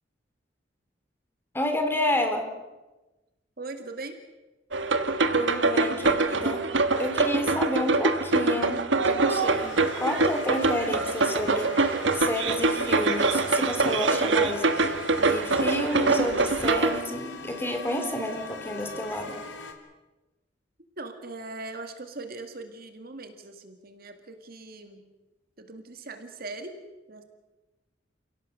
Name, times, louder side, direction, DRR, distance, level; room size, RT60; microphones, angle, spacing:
voice 1, 1.5-2.5 5.3-6.6 7.0-19.4, left 1 dB, 15° left, 4 dB, 3.3 m, -30 dB
voice 2, 3.6-4.2 21.0-25.0 25.6-26.7 27.1-27.2, right 3 dB, 55° right, 7 dB, 2.1 m, -40 dB
sound 1, 4.7-17.0, right 3 dB, 80° right, 1.5 m, -24 dB
sound 2, 9.6-19.7, left 2 dB, 85° left, 2.9 m, -40 dB
29.5 x 17.0 x 6.7 m, 1.1 s
head